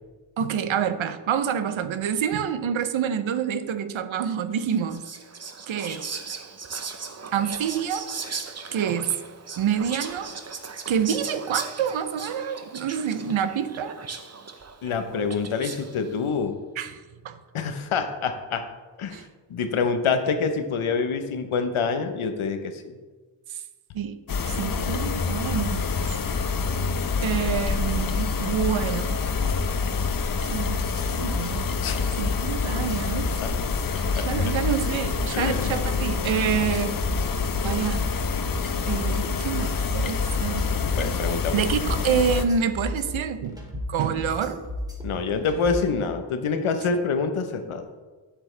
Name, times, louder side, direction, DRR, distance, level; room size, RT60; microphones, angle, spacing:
voice 1, 0.4-5.0 5.7-6.2 7.3-8.1 8.7-9.1 9.6-10.3 10.9-14.0 16.8-17.4 19.1-19.3 23.5-23.6 23.9-24.2 24.5-25.9 27.2-29.2 30.4-30.9 31.2-31.7 32.2-33.3 34.2-37.0 37.6-38.1 38.9-40.7 41.5-44.6, right 8 dB, 70° right, 11 dB, 0.7 m, -27 dB
Whispering, 4.6-16.0, right 5 dB, 30° right, 0.8 m, -37 dB
voice 2, 14.8-16.6 17.5-18.6 19.0-19.2 19.5-23.0 31.8-32.3 33.4-33.5 34.1-34.3 35.3-35.8 41.0-41.6 45.0-47.8, left 5 dB, 80° left, 7 dB, 1.0 m, -26 dB
sound 1, 24.3-42.4, left 5 dB, 45° left, 0.7 m, -27 dB
sound 2, 30.7-46.0, left 1 dB, 10° right, 2.1 m, -35 dB
8.8 x 7.6 x 3.3 m, 1.3 s
cardioid pair, 90°, 49 cm